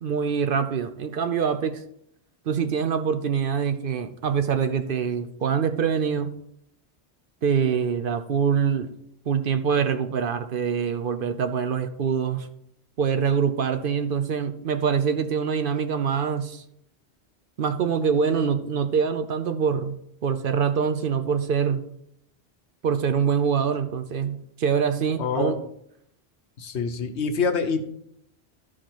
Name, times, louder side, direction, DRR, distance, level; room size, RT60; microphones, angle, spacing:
voice 1, 0.0-1.8 2.5-6.3 7.4-8.9 9.3-12.5 13.0-16.6 17.6-20.0 20.2-21.8 22.8-25.6, right 6 dB, 60° right, 9 dB, 0.8 m, -24 dB
voice 2, 25.2-25.6 26.6-27.9, left 5 dB, 80° left, 7 dB, 1.2 m, -26 dB
12.5 x 5.0 x 4.4 m, 0.73 s
omnidirectional pair, 1.1 m